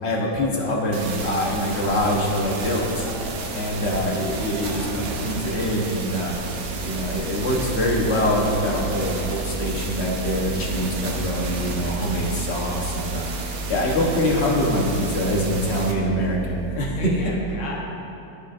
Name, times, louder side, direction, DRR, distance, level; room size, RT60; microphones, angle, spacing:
voice 1, 0.0-3.1 3.5-6.4 6.8-17.0, equal, 45° left, -2 dB, 1.1 m, -24 dB
sound 1, 0.9-15.9, right 3 dB, 65° right, 1.1 m, -32 dB
sound 2, 1.6-9.2, right 2 dB, 80° right, 1.5 m, -40 dB
voice 2, 4.6-5.1 17.0-17.9, left 2 dB, 80° left, -3 dB, 1.9 m, -35 dB
sound 3, 6.3-17.3, right 1 dB, 65° left, 1.0 m, -34 dB
13.0 x 5.0 x 2.5 m, 2.9 s
omnidirectional pair, 2.0 m